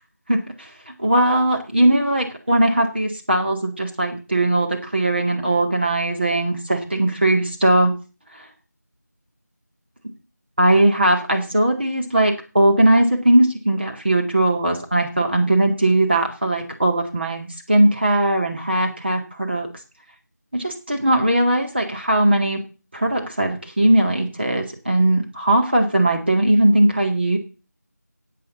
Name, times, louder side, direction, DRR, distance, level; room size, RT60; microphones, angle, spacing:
voice 1, 0.3-0.7 1.0-7.9 8.4-8.5 10.6-19.7 20.5-22.6 22.9-27.4, right 1 dB, 35° right, 2 dB, 2.2 m, -19 dB
10.5 x 8.6 x 7.0 m, 0.33 s
figure-of-eight pair, 175°, 9 cm